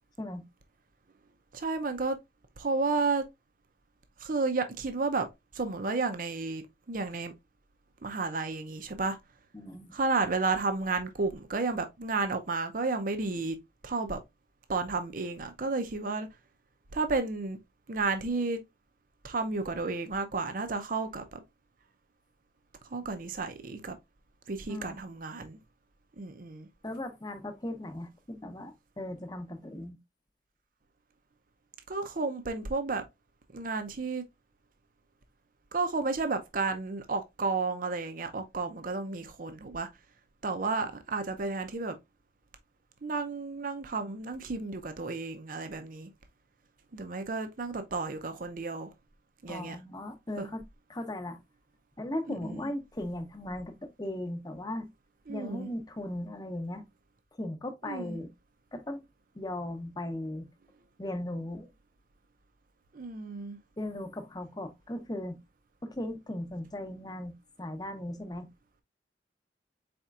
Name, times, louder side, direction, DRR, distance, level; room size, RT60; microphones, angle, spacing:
voice 1, 1.5-2.2 2.6-3.2 4.2-5.3 5.5-7.3 8.0-9.2 9.9-13.6 13.8-14.2 14.7-16.3 16.9-17.6 17.9-18.6 19.2-21.4 22.8-24.0 24.5-25.6 26.2-26.7 31.9-33.0 33.5-34.2 35.7-39.9 40.4-42.0 43.0-46.1 46.9-48.9 49.4-49.8 50.4-50.5 52.3-52.7 55.3-55.7 57.8-58.2 62.9-63.6, right 3 dB, 50° right, 0.6 m, -32 dB
voice 2, 9.5-9.9 24.7-25.1 26.8-30.0 40.8-40.9 49.5-50.6 50.9-51.4 52.0-54.9 55.3-56.9 57.4-58.3 58.7-59.0 59.3-60.5 61.0-61.7 63.8-65.4 65.8-68.5, left 1 dB, 25° left, 0.8 m, -37 dB
4.3 x 4.2 x 2.4 m
head